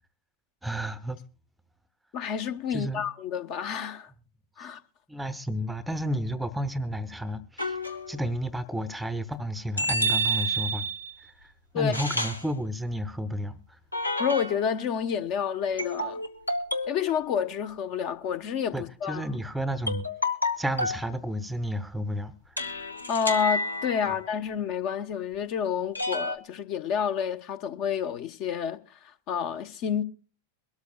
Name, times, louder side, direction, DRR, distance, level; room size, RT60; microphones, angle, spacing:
voice 1, 0.6-1.2 2.7-3.0 4.6-4.7 5.1-10.9 11.2-13.8 18.7-20.1 20.6-22.8 24.1-24.2, equal, 5° right, 0.8 m, -32 dB
voice 2, 2.1-4.1 4.6-4.8 11.7-11.9 14.2-16.2 16.9-19.2 23.1-30.0, left 7 dB, 40° left, 1.1 m, -29 dB
sound 1, 7.6-8.2 9.8-11.1 11.9-12.5 13.9-14.7 15.8-17.0 19.9-21.1 22.6-24.3 25.9-26.4, equal, 85° left, 1.1 m, -29 dB
23.0 x 13.0 x 2.4 m
figure-of-eight pair, 90°, 0 cm